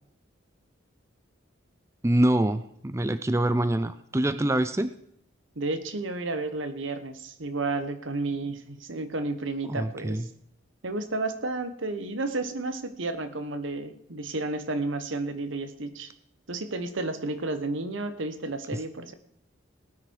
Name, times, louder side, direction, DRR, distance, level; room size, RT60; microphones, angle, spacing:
voice 1, 2.0-4.9 9.7-10.2, right 1 dB, 15° right, 12 dB, 0.5 m, -25 dB
voice 2, 5.6-10.3 10.8-16.1 16.5-19.1, right 2 dB, 75° right, 10 dB, 1.2 m, -32 dB
18.5 x 9.9 x 4.7 m, 0.71 s
head